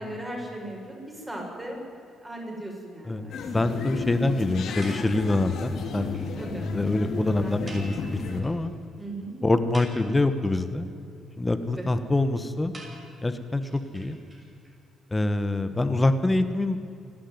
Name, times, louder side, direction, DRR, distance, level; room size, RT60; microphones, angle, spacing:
voice 1, 0.0-1.8 2.2-3.4 6.4-6.6 7.4-7.9 9.0-9.3 11.8-11.9, right 1 dB, 15° right, -1 dB, 7.5 m, -37 dB
voice 2, 3.0-6.1 6.7-8.7 9.4-10.9 11.4-12.7 13.2-14.2 15.1-16.8, left 2 dB, 15° left, 10 dB, 1.4 m, -25 dB
sound 1, 3.3-8.4, left 4 dB, 70° left, 2.9 m, -34 dB
sound 2, 4.8-5.5 5.9-6.0 6.1-6.3 6.5-6.6 6.8-6.9 7.7-8.7 9.0-9.1 9.5-10.5 12.7-14.7, right 1 dB, 30° right, 6.8 m, -46 dB
28.5 x 11.5 x 9.7 m, 2.7 s
cardioid pair, 90°, 0 cm